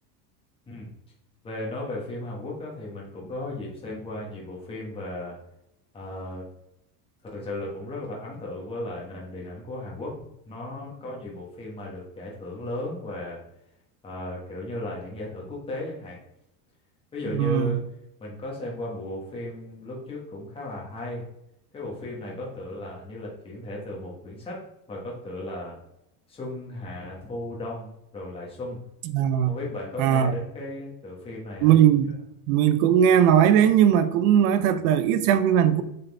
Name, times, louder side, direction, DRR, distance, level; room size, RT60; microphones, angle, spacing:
voice 1, 1.4-5.4 5.9-6.5 7.3-13.4 14.0-16.2 17.1-17.8 18.2-21.2 21.7-25.8 26.3-28.8 29.4-31.8, left 1 dB, 10° left, 1.2 m, -35 dB
voice 2, 17.3-17.8 29.1-29.5 30.0-30.3 31.6-32.1 32.5-35.8, right 9 dB, 60° right, 0.7 m, -19 dB
7.6 x 4.2 x 3.4 m
cardioid pair, 165°, 46 cm